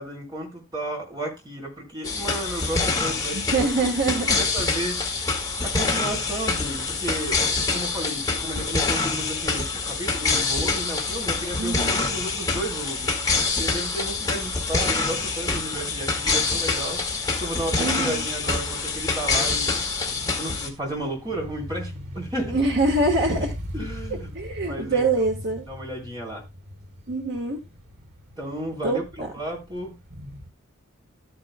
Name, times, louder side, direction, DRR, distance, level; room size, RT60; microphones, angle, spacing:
voice 1, 0.0-3.9 4.4-13.1 13.6-17.0 17.4-19.7 20.3-22.6 23.7-24.3 24.6-25.1 25.7-26.4 28.4-30.0, right 1 dB, 20° right, 3.8 m, -33 dB
sound 1, 2.0-20.7, left 4 dB, 15° left, 1.6 m, -26 dB
voice 2, 3.3-4.4 11.6-12.1 17.8-18.3 22.5-23.5 24.3-25.7 27.1-27.6 28.8-29.3, right 2 dB, 50° right, 1.4 m, -24 dB
sound 2, 11.1-30.5, equal, 90° right, 3.2 m, -41 dB
13.5 x 9.0 x 2.2 m
head